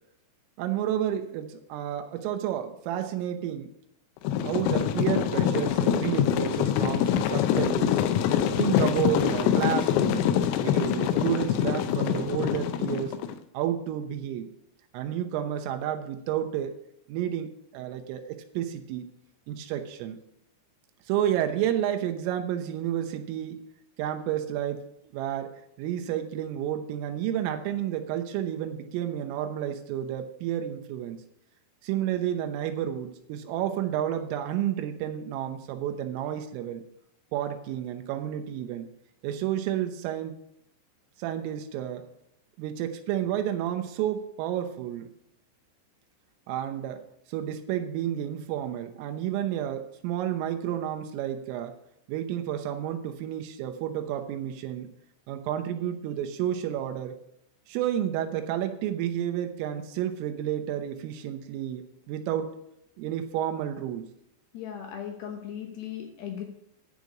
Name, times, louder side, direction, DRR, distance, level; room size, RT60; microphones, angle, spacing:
voice 1, 0.6-3.7 4.4-8.0 8.6-10.3 10.6-13.2 13.6-14.5 14.9-16.8 17.1-19.1 19.5-20.2 21.1-23.6 24.0-24.9 25.1-31.2 31.8-36.8 37.3-38.9 39.2-40.4 41.2-42.0 42.6-45.1 46.5-47.0 47.3-51.8 52.1-54.9 55.3-57.2 57.7-62.5 63.0-64.1, right 11 dB, 85° right, 6 dB, 3.5 m, -31 dB
sound 1, 4.2-13.3, left 10 dB, 85° left, 3.3 m, -25 dB
voice 2, 64.5-66.5, left 9 dB, 70° left, 2 dB, 2.7 m, -37 dB
10.5 x 5.1 x 8.4 m, 0.75 s
omnidirectional pair, 5.8 m